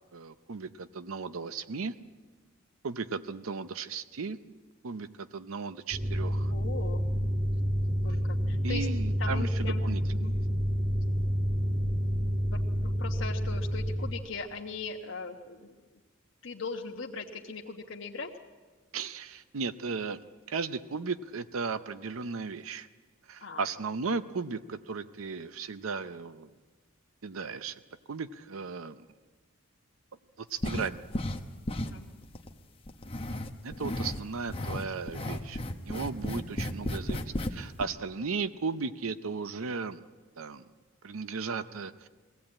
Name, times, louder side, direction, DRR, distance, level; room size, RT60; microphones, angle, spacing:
voice 1, 0.1-1.9 2.8-4.4 4.8-6.5 8.6-10.0 18.9-20.2 20.5-22.9 23.3-26.5 27.2-27.8 28.1-29.0 30.4-31.0 33.6-40.0 40.4-40.7 41.0-42.1, right 4 dB, 85° right, 13 dB, 0.7 m, -36 dB
sound 1, 5.9-14.1, equal, 35° right, 2.1 m, -29 dB
voice 2, 6.5-7.0 8.0-8.9 9.2-9.8 10.1-10.3 12.5-16.0 16.4-18.3 23.4-23.6 31.8-32.1 35.0-35.2, left 4 dB, 65° left, 0 dB, 1.2 m, -40 dB
sound 2, 30.6-31.4 31.7-32.5 32.9-34.2 34.5-37.5 37.8-37.9, left 1 dB, 25° left, 1.0 m, -33 dB
22.5 x 16.0 x 8.7 m, 1.4 s
head